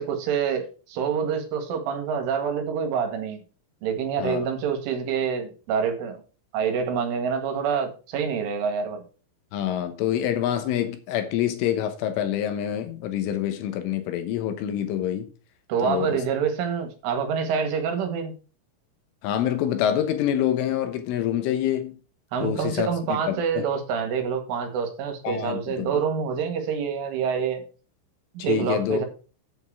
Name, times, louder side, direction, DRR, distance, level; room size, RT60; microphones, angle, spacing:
voice 1, 0.0-3.4 3.8-6.2 6.5-9.0 15.7-18.3 22.3-27.6 28.4-29.1, right 6 dB, 75° right, 4.2 m, -26 dB
voice 2, 9.5-15.3 15.8-16.2 19.2-22.0 22.4-23.6 25.2-26.0 28.4-29.0, left 11 dB, 75° left, 3.6 m, -26 dB
9.6 x 8.0 x 4.8 m
omnidirectional pair, 5.9 m